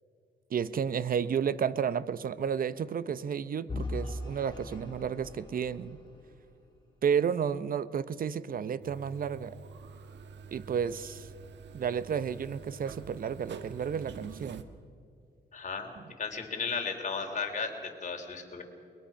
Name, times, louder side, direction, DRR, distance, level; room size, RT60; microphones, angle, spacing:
voice 1, 0.5-6.0 7.0-9.6 10.5-11.3 11.7-14.7, right 7 dB, 50° right, 16 dB, 0.7 m, -32 dB
Vehicle / Engine, 3.7-6.7, left 2 dB, 25° left, 6.7 m, -40 dB
sound 1, 8.8-14.6, right 5 dB, 75° right, 1.2 m, -47 dB
voice 2, 15.5-15.9 16.2-18.6, left 5 dB, 40° left, 3 dB, 3.3 m, -35 dB
21.5 x 21.5 x 5.8 m, 2.5 s
cardioid pair, 100°, 18 cm